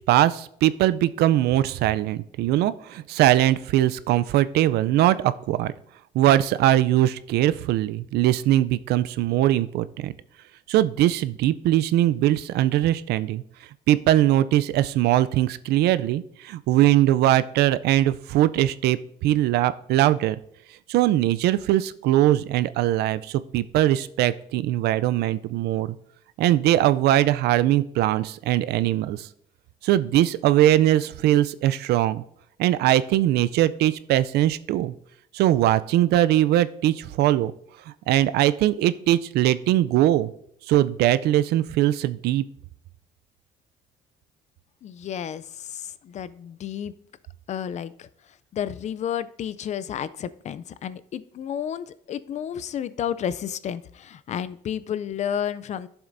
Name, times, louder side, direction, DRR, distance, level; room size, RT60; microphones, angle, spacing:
voice 1, 0.0-5.7 6.1-10.1 10.7-13.4 13.9-20.4 20.9-25.9 26.4-29.3 29.8-32.2 32.6-34.9 35.3-37.5 37.9-40.3 40.7-42.4, right 13 dB, 75° right, 15 dB, 0.4 m, -21 dB
voice 2, 44.8-47.0 47.5-48.1 48.5-55.9, left 9 dB, 45° left, 15 dB, 0.4 m, -31 dB
12.0 x 7.1 x 2.6 m, 0.71 s
cardioid pair, 110°, 17 cm